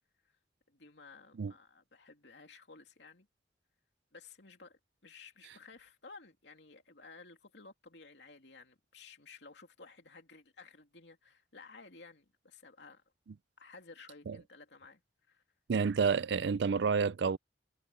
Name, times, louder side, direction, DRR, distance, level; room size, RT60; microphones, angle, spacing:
voice 1, 0.7-3.3 4.1-13.0 13.6-15.0 15.3-15.4, left 4 dB, 70° left, 3.0 m, -55 dB
voice 2, 15.7-17.4, right 5 dB, 65° right, 0.4 m, -29 dB
head